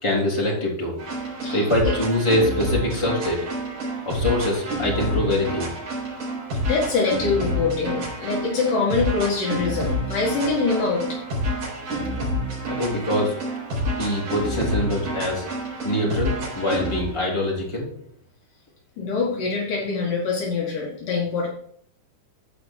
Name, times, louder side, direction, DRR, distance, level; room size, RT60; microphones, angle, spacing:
voice 1, 0.0-0.9 1.5-3.4 4.0-5.7 12.7-13.4 14.0-15.4 15.8-17.9, left 1 dB, 10° left, -3 dB, 2.8 m, -24 dB
sound 1, 1.0-17.1, equal, 65° right, 5.7 m, -28 dB
voice 2, 1.4-1.9 6.7-11.2 19.0-21.5, left 4 dB, 65° left, -3 dB, 3.2 m, -24 dB
14.0 x 5.1 x 4.5 m, 0.64 s
omnidirectional pair, 4.2 m